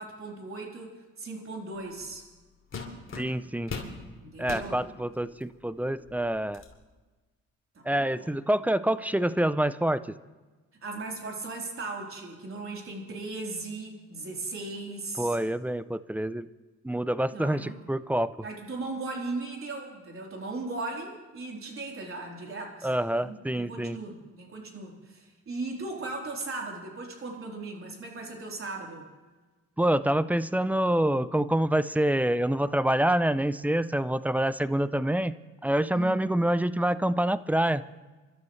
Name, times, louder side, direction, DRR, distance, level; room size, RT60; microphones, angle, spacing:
voice 1, 0.0-2.2 4.2-4.9 7.7-8.3 10.8-15.4 17.3-17.8 18.4-29.1 35.9-36.3, right 3 dB, 45° right, -1 dB, 3.8 m, -38 dB
sound 1, 2.0-2.2 2.7-4.0 4.4-4.7 5.4-5.5 6.0-6.7, left 4 dB, 40° left, 2.8 m, -38 dB
voice 2, 3.2-3.7 4.4-6.6 7.9-10.0 15.2-16.5 16.8-18.4 22.8-24.0 29.8-35.3 35.6-37.8, right 1 dB, 5° right, 15 dB, 0.4 m, -26 dB
28.0 x 12.5 x 3.2 m, 1.3 s
cardioid pair, 90°, 30 cm